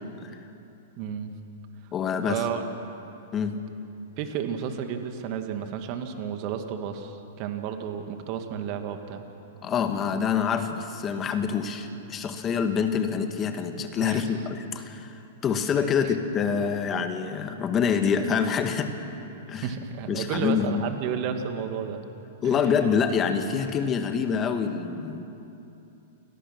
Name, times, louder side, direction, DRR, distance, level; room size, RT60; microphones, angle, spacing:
voice 1, 1.0-1.3 2.2-2.6 4.2-9.2 14.0-14.4 16.0-16.2 19.6-22.0 22.4-22.7, right 8 dB, 45° right, 6 dB, 2.2 m, -32 dB
voice 2, 1.9-2.4 3.3-3.6 9.6-18.9 19.5-19.7 20.1-20.8 22.4-25.2, left 6 dB, 25° left, 7 dB, 2.0 m, -26 dB
29.0 x 18.0 x 6.2 m, 2.8 s
hypercardioid pair, 105°, 0 cm